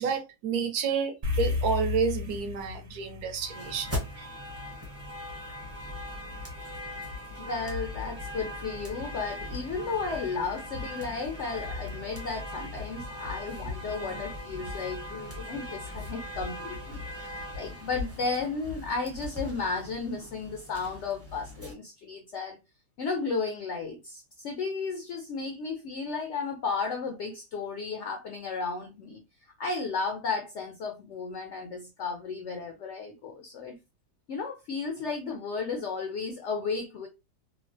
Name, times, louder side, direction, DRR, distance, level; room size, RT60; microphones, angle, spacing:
voice 1, 0.0-4.3, right 6 dB, 70° right, 1.0 m, -30 dB
sound 1, 1.2-5.7, left 4 dB, 40° right, 0.9 m, -34 dB
sound 2, 3.4-21.7, left 1 dB, 15° right, 0.5 m, -39 dB
voice 2, 7.1-22.6 23.0-29.2 29.6-33.8 34.3-37.1, left 4 dB, 75° left, 0.6 m, -34 dB
3.3 x 2.0 x 2.5 m
omnidirectional pair, 1.8 m